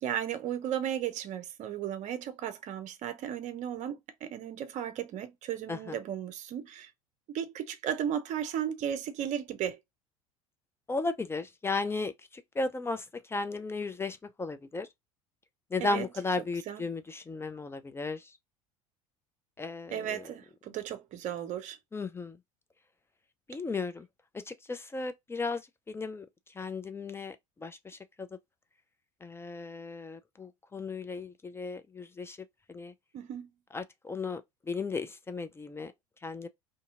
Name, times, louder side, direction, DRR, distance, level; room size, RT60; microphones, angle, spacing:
voice 1, 0.0-6.9 7.3-9.8 15.8-16.1 16.7-16.8 19.9-21.8 33.1-33.5, right 9 dB, 40° right, 0.6 m, -35 dB
voice 2, 10.9-14.9 15.7-18.3 19.6-20.2 21.9-22.4 23.5-24.1 24.3-26.3 26.6-27.4 27.6-28.0 29.2-32.4 32.7-32.9 33.7-34.4 34.7-35.9 36.2-36.5, left 3 dB, 15° left, 0.4 m, -35 dB
2.7 x 2.5 x 2.4 m
figure-of-eight pair, 70°, 18 cm